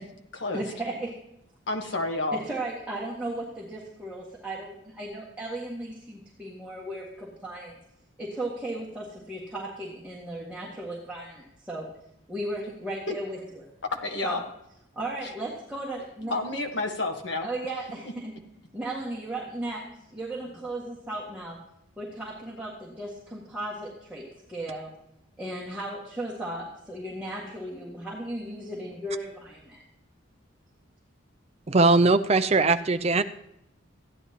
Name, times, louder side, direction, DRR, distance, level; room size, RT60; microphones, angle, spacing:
voice 1, 0.5-1.1 2.3-7.7 8.2-11.9 12.3-13.7 14.2-14.4 14.9-16.3 17.4-18.3 18.7-19.8 20.1-21.6 22.0-24.9 25.4-29.8, right 1 dB, 5° right, -6 dB, 1.6 m, -36 dB
voice 2, 1.7-2.4 14.0-14.4 16.3-17.5, left 2 dB, 60° left, 3 dB, 1.3 m, -29 dB
voice 3, 31.7-33.2, right 3 dB, 30° right, 11 dB, 0.4 m, -20 dB
14.0 x 9.9 x 2.9 m, 0.80 s
head